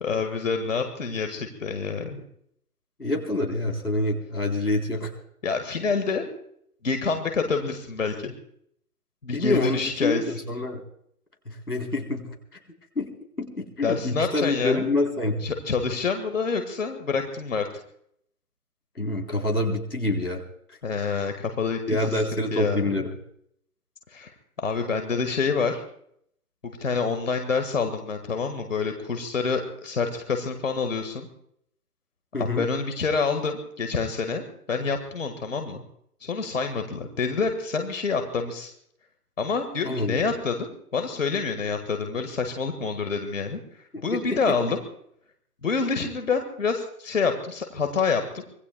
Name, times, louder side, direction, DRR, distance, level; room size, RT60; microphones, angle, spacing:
voice 1, 0.0-2.2 5.4-6.3 6.8-8.3 9.2-10.2 13.8-14.9 15.4-17.7 20.8-22.2 22.5-22.9 24.1-24.3 24.6-25.8 26.6-31.3 32.4-35.8 36.2-38.7 39.4-43.6 44.0-44.8 45.6-48.4, left 5 dB, 55° left, 6 dB, 1.9 m, -27 dB
voice 2, 3.0-5.1 9.3-10.8 11.5-12.2 13.0-13.1 13.4-15.5 19.0-20.4 21.9-23.1 32.3-32.6 39.8-40.2 43.9-44.0, left 2 dB, 90° left, 2 dB, 3.9 m, -26 dB
25.5 x 20.0 x 2.3 m, 0.69 s
figure-of-eight pair, 145°, 46 cm